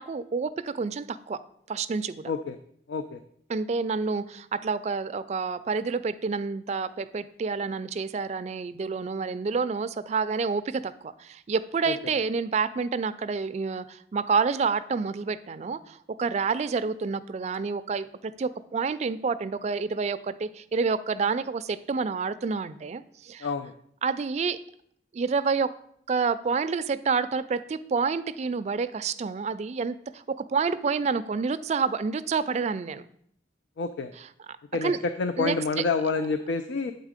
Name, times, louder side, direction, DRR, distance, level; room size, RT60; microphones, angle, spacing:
voice 1, 0.0-1.4 1.7-2.3 3.5-23.5 24.0-24.6 25.1-25.7 26.1-33.0 34.2-34.3 34.8-35.0 35.4-35.8, right 5 dB, 40° right, 12 dB, 0.3 m, -28 dB
voice 2, 2.9-3.2 11.9-12.0 23.4-23.7 33.8-34.1 34.7-36.9, left 4 dB, 90° left, 9 dB, 0.4 m, -28 dB
8.1 x 4.0 x 4.9 m, 0.66 s
head